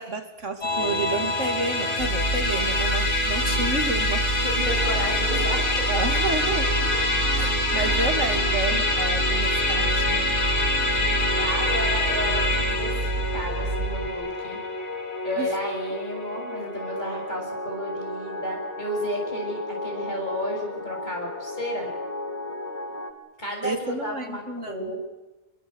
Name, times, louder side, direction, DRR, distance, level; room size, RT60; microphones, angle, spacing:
voice 1, 0.0-4.3 5.9-6.9 7.4-10.3 15.4-15.5 23.6-24.9, right 3 dB, 80° right, 6 dB, 3.0 m, -30 dB
Musical instrument, 0.6-16.1, left 2 dB, 75° left, 3.0 m, -26 dB
sound 1, 2.0-14.1, right 3 dB, 55° right, 2.2 m, -29 dB
voice 2, 3.4-3.7 4.4-5.9 11.0-12.9 13.3-14.6 15.2-21.9 23.4-25.0, equal, 40° left, 1 dB, 7.9 m, -32 dB
sound 2, 4.6-23.1, left 1 dB, 15° left, 2.8 m, -34 dB
27.0 x 21.5 x 8.1 m, 1.1 s
omnidirectional pair, 1.2 m